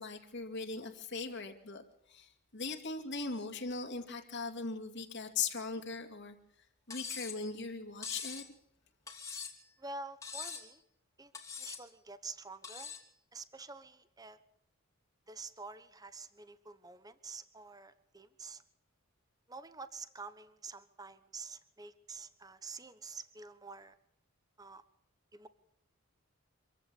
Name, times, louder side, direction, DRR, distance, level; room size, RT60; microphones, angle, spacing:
voice 1, 0.0-8.5, left 4 dB, 50° left, 3 dB, 2.5 m, -40 dB
Cutlery silverware, 6.9-7.4 8.0-8.5 9.1-9.7 10.2-10.7 11.3-11.8 12.6-13.1, left 6 dB, 15° left, 2.8 m, -43 dB
voice 2, 9.8-10.8 11.2-11.3 11.6-12.9 13.3-14.4 15.3-18.6 19.5-24.0 24.6-24.8 25.3-25.5, right 4 dB, 15° right, 13 dB, 1.1 m, -48 dB
26.0 x 15.0 x 8.7 m, 0.73 s
head